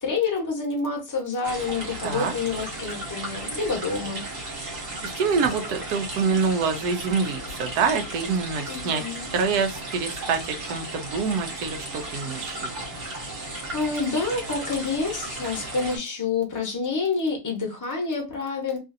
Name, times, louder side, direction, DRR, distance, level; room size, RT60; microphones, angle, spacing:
voice 1, 0.0-4.2 8.7-9.3 13.7-18.8, left 4 dB, 15° left, 0.8 m, -28 dB
sound 1, 1.4-16.0, right 2 dB, 45° right, 1.1 m, -35 dB
voice 2, 5.0-9.0 9.3-12.8, right 5 dB, 85° right, 1.2 m, -26 dB
3.1 x 2.5 x 2.5 m
omnidirectional pair, 1.7 m